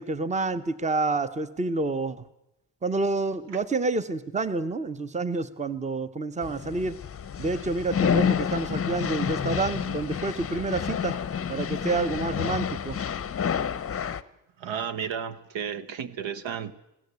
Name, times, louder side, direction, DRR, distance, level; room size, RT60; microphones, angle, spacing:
voice 1, 0.0-2.3 2.8-7.0 7.4-11.1 11.5-13.0, right 3 dB, 15° right, 0.9 m, -28 dB
sound 1, 6.4-14.2, left 7 dB, 30° left, 0.7 m, -29 dB
voice 2, 14.6-16.7, right 7 dB, 75° right, 1.3 m, -33 dB
22.0 x 17.0 x 8.2 m
cardioid pair, 125°, 45 cm